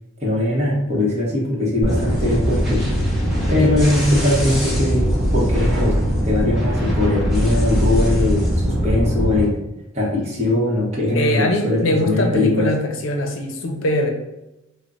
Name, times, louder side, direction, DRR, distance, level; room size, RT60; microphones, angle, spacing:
voice 1, 0.2-2.8 3.5-5.9 6.2-9.6 9.9-12.7, left 2 dB, 30° right, -5 dB, 1.1 m, -20 dB
sound 1, 1.8-9.4, equal, ahead, 1.1 m, -20 dB
voice 2, 11.1-14.1, left 1 dB, 70° left, 3 dB, 0.6 m, -22 dB
5.0 x 2.2 x 2.5 m, 0.95 s
head